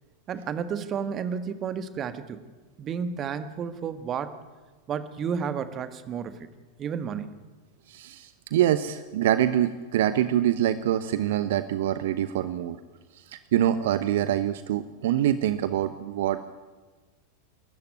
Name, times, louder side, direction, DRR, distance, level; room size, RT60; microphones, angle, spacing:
voice 1, 0.3-2.4 2.8-4.4 4.9-6.5 6.8-7.4, right 7 dB, 30° right, 11 dB, 1.6 m, -32 dB
voice 2, 7.9-12.8 13.1-16.5, right 11 dB, 55° right, 13 dB, 0.9 m, -25 dB
29.5 x 13.5 x 9.5 m, 1.3 s
figure-of-eight pair, 90°, 0 cm